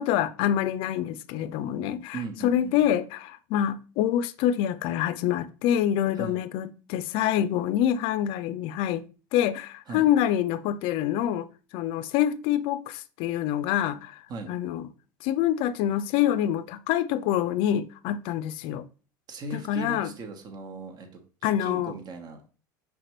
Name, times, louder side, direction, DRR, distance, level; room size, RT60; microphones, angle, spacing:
voice 1, 0.0-9.0 9.3-11.5 11.7-14.2 14.5-14.9 15.2-18.9 19.5-20.1 21.4-21.9, left 11 dB, 60° left, 0.4 m, -26 dB
voice 2, 2.1-2.8 6.2-6.4 9.9-10.1 14.3-14.5 19.3-21.2 21.6-22.5, right 2 dB, 40° right, 1.0 m, -38 dB
5.0 x 3.5 x 3.0 m
hypercardioid pair, 90°, 10 cm